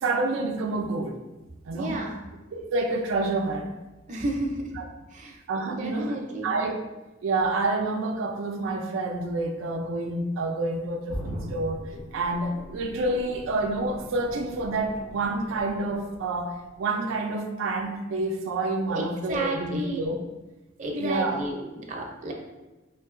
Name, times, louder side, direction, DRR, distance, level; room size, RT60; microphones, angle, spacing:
voice 1, 0.0-1.2 1.7-2.0 2.5-3.8 4.8-4.9 5.5-6.8 7.2-20.2 21.0-21.4, right 2 dB, 90° right, 3 dB, 0.4 m, -28 dB
voice 2, 1.7-2.2 4.1-4.6 5.1-5.4 5.6-6.5 18.9-20.0 20.8-22.3, right 1 dB, 40° right, 0 dB, 0.5 m, -32 dB
sound 1, 11.1-16.9 17.3-17.4, equal, 55° left, 1.3 m, -40 dB
4.5 x 2.7 x 2.4 m, 1.1 s
head